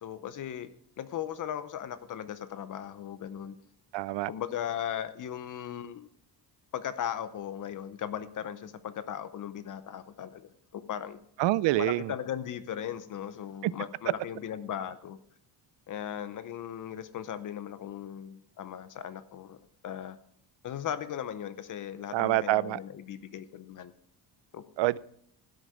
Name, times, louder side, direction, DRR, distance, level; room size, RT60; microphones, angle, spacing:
voice 1, 0.0-3.5 4.3-6.1 6.7-11.2 11.8-15.2 15.9-19.6 19.8-20.2 20.6-23.9 24.5-24.6, left 9 dB, 45° left, 0.7 m, -37 dB
voice 2, 3.9-4.3 11.4-12.1 22.1-22.8 24.8-25.0, right 17 dB, 80° right, 0.5 m, -26 dB
15.5 x 6.5 x 4.9 m
cardioid pair, 170°, 43 cm